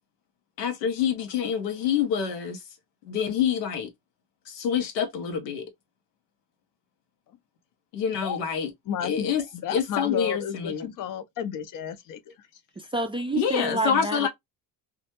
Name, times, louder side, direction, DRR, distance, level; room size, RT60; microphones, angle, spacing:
voice 1, 0.6-2.6 3.0-3.9 4.5-5.7 7.9-8.7 9.0-9.4 9.7-10.9 13.4-14.3, left 7 dB, 90° left, 0.7 m, -26 dB
voice 2, 8.9-12.5, left 9 dB, 45° left, 0.5 m, -32 dB
voice 3, 12.8-14.3, right 2 dB, 15° right, 0.3 m, -29 dB
2.2 x 2.1 x 2.8 m
hypercardioid pair, 60°, 47 cm